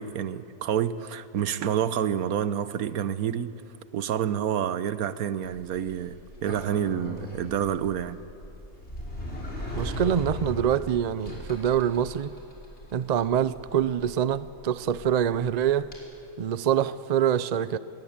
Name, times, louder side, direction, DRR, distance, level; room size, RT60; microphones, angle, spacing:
voice 1, 0.0-3.5 3.9-8.2, right 9 dB, 85° right, 1.3 m, -28 dB
Sliding door, 5.4-16.0, equal, 50° left, 5.6 m, -39 dB
voice 2, 9.7-12.3 12.9-15.9 16.4-17.8, right 9 dB, 60° right, 0.4 m, -25 dB
21.5 x 20.5 x 8.8 m
omnidirectional pair, 1.5 m